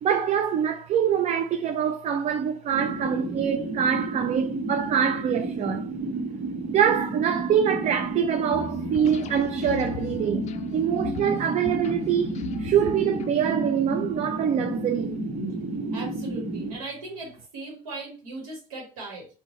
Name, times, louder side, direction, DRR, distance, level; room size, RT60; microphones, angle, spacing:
voice 1, 0.0-5.9 6.7-15.2, right 8 dB, 40° right, 0.4 m, -25 dB
sound 1, 2.7-16.8, right 2 dB, 55° right, 0.9 m, -32 dB
sound 2, 8.5-13.7, left 9 dB, 40° left, 0.4 m, -37 dB
voice 2, 15.9-19.3, right 3 dB, 80° right, 1.0 m, -38 dB
3.7 x 2.1 x 3.0 m
hypercardioid pair, 65°, 18 cm